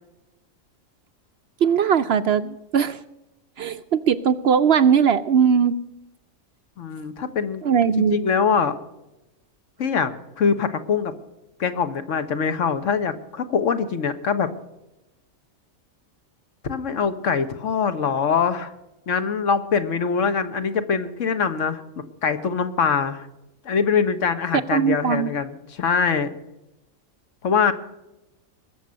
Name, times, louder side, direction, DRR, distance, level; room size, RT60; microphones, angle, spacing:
voice 1, 1.6-3.0 3.6-5.7 7.6-8.2 24.7-25.3, right 7 dB, 60° right, 11 dB, 0.7 m, -19 dB
voice 2, 6.8-7.6 8.0-8.8 9.8-10.1 10.4-11.1 11.6-14.5 16.6-18.7 19.1-23.3 23.6-26.3 27.4-27.7, left 6 dB, 65° left, 10 dB, 1.5 m, -23 dB
21.0 x 7.3 x 6.4 m, 0.96 s
omnidirectional pair, 1.4 m